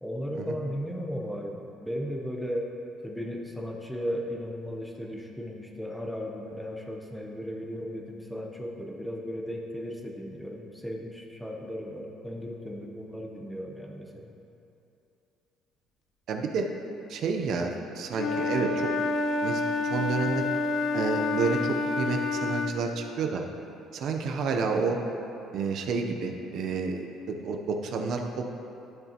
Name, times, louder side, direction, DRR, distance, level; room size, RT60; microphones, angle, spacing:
voice 1, 0.0-2.7 3.0-14.3, equal, ahead, 0 dB, 0.9 m, -36 dB
voice 2, 16.3-16.7 17.1-18.9 19.4-20.4 20.9-23.4 23.9-25.0 25.5-28.5, right 4 dB, 60° right, 3 dB, 0.7 m, -30 dB
Wind instrument woodwind instrument, 18.1-22.8, left 3 dB, 55° left, 0.4 m, -28 dB
12.0 x 6.8 x 2.9 m, 2.8 s
cardioid pair, 125°, 0 cm